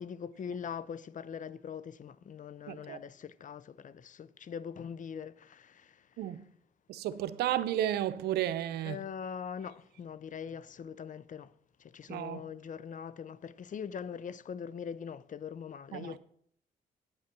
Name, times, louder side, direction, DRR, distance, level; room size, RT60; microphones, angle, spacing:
voice 1, 0.0-6.2 8.8-11.5 11.8-16.2, left 7 dB, 50° left, 0.6 m, -42 dB
voice 2, 2.7-3.0 6.2-6.4 6.9-9.0 12.1-12.4 15.9-16.2, right 12 dB, 90° right, 0.7 m, -33 dB
8.7 x 8.7 x 6.0 m
supercardioid pair, 65°, 16 cm